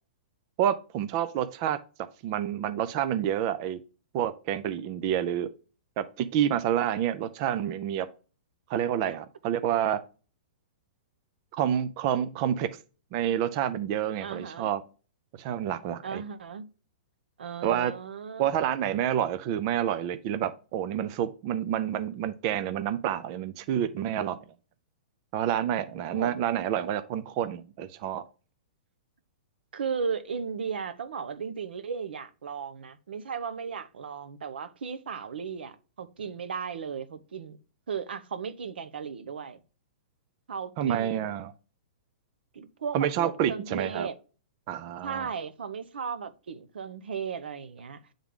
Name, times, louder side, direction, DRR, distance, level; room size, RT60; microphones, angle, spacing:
voice 1, 0.6-1.8 2.2-3.8 4.1-5.5 6.0-8.1 8.7-10.0 11.5-12.7 13.1-14.8 15.4-16.2 17.6-17.9 18.4-24.4 25.3-28.2 40.8-41.5 42.9-44.1 44.7-45.3, right 10 dB, 30° right, 0.4 m, -28 dB
voice 2, 14.2-14.7 16.0-16.7 17.4-18.5 26.1-26.4 29.7-37.6 37.9-39.6 40.5-41.4 42.5-44.2 45.0-48.0, right 6 dB, 90° right, 0.9 m, -36 dB
8.7 x 3.6 x 3.6 m
hypercardioid pair, 160°, 5 cm